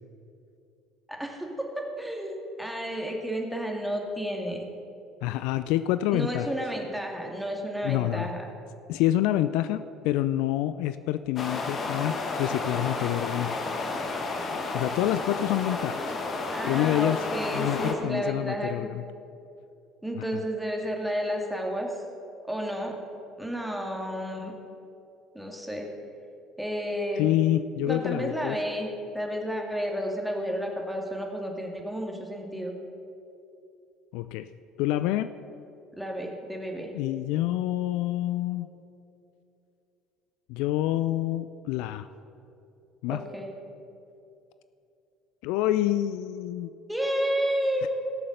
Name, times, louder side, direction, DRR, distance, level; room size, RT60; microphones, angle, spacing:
voice 1, 1.1-4.7 6.1-8.4 16.5-18.9 20.0-22.0 22.4-23.0 23.4-24.5 25.3-25.9 26.6-27.4 27.8-32.7 36.0-36.9 43.1-43.5 46.9-47.9, equal, 5° right, 1 dB, 2.3 m, -31 dB
voice 2, 5.2-6.5 7.8-8.3 8.9-13.7 14.7-16.1 16.6-17.2 17.5-19.0 27.2-28.6 34.1-34.5 34.8-35.3 36.9-38.7 40.5-42.1 43.0-43.2 45.4-46.7 47.8-47.9, left 14 dB, 65° left, 13 dB, 0.3 m, -27 dB
sound 1, 11.4-17.9, left 3 dB, 40° left, 1.6 m, -32 dB
17.0 x 6.9 x 6.6 m, 2.8 s
figure-of-eight pair, 60°, 0 cm